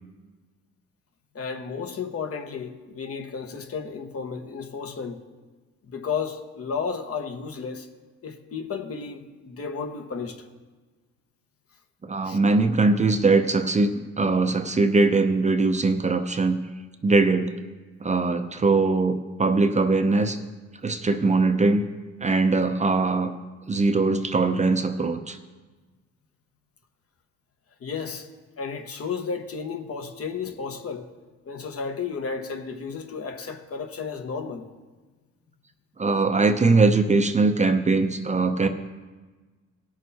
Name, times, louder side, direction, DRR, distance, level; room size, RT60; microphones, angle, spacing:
voice 1, 1.3-5.2 5.8-7.9 8.2-10.4 12.2-12.4 27.8-28.3 28.6-31.1 31.4-34.7, left 5 dB, 50° left, 6 dB, 1.2 m, -33 dB
voice 2, 12.0-16.6 17.0-17.5 18.0-20.4 20.8-21.8 22.2-23.3 23.7-25.4 36.0-38.7, right 3 dB, 25° right, 7 dB, 0.6 m, -21 dB
17.5 x 6.4 x 4.2 m, 1.3 s
cardioid pair, 90°, 30 cm